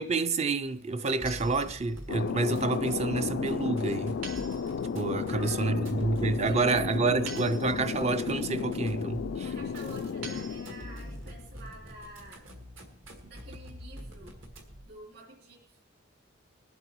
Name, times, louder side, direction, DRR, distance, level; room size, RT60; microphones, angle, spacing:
voice 1, 0.0-4.2 4.9-9.5, right 3 dB, 30° right, 0.4 m, -28 dB
sound 1, 1.0-15.0, equal, 70° right, 1.9 m, -46 dB
sound 2, 1.3-2.2 4.2-5.1 7.3-8.2 10.2-11.1, right 4 dB, 85° right, 2.8 m, -46 dB
Thunder, 2.1-11.4, left 6 dB, 60° left, 0.3 m, -33 dB
voice 2, 5.3-6.2 6.4-7.6 9.4-12.5 13.2-14.4 14.8-15.8, right 1 dB, 50° right, 2.7 m, -49 dB
21.0 x 8.0 x 3.0 m
head